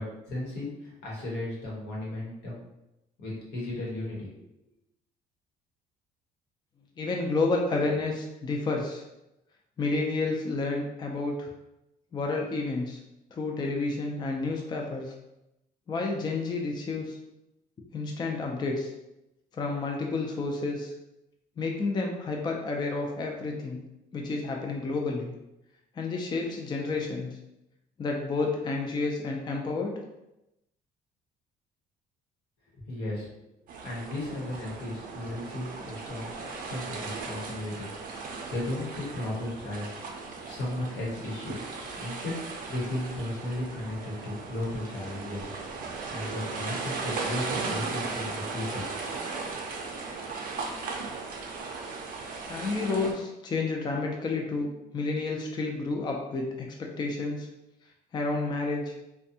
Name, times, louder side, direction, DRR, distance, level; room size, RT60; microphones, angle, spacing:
voice 1, 0.0-2.6 3.2-4.3 32.8-33.5 33.8-36.3 36.6-37.9 38.2-40.0 40.4-41.6 42.0-45.5 45.8-48.9, left 1 dB, 85° left, -5 dB, 1.0 m, -35 dB
voice 2, 7.0-9.0 9.8-11.5 12.1-13.0 13.3-15.1 15.9-17.2 17.9-18.9 19.5-20.9 21.6-23.8 24.1-25.3 26.0-27.4 28.0-29.9 52.5-57.5 58.1-58.9, left 3 dB, 25° left, 1 dB, 0.4 m, -30 dB
sound 1, 33.7-53.1, right 4 dB, 55° right, 0.5 m, -37 dB
2.5 x 2.2 x 2.7 m, 0.90 s
cardioid pair, 110°, 17 cm